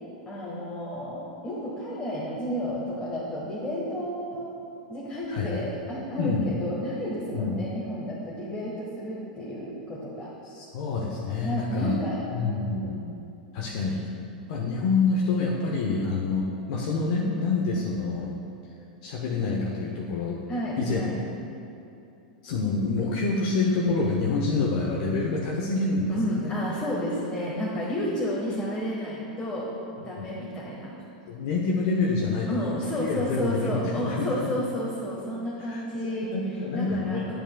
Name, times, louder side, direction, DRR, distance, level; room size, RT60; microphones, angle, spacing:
voice 1, 0.3-4.5 4.9-10.3 11.4-13.0 20.5-21.2 26.1-29.7 30.0-30.9 32.5-37.3, equal, 20° left, -7 dB, 1.3 m, -31 dB
voice 2, 5.3-5.6 6.2-6.5 7.3-7.6 10.4-12.0 12.3-13.0 13.5-14.0 14.5-18.3 19.0-20.4 20.8-21.1 22.4-26.5 30.2-30.3 31.3-34.6 35.6-37.3, left 3 dB, 60° left, -3 dB, 0.8 m, -27 dB
8.8 x 7.8 x 2.3 m, 2.8 s
hypercardioid pair, 110°, 5 cm